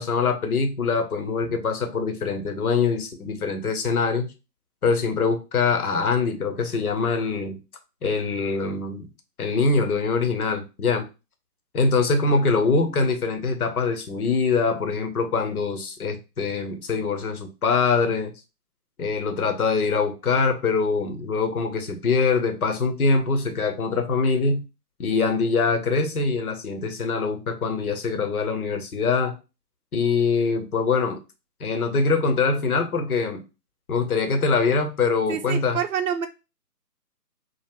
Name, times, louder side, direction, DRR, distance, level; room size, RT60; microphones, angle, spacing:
voice 1, 0.0-4.3 4.8-7.6 8.0-9.1 9.4-11.1 11.7-18.3 19.0-24.7 25.0-29.4 29.9-31.2 31.6-33.4 33.9-35.8, left 4 dB, 60° left, 6 dB, 0.8 m, -23 dB
voice 2, 12.3-12.9 35.3-36.3, right 8 dB, 55° right, 5 dB, 0.5 m, -29 dB
2.3 x 2.0 x 3.4 m, 0.28 s
figure-of-eight pair, 145°, 50 cm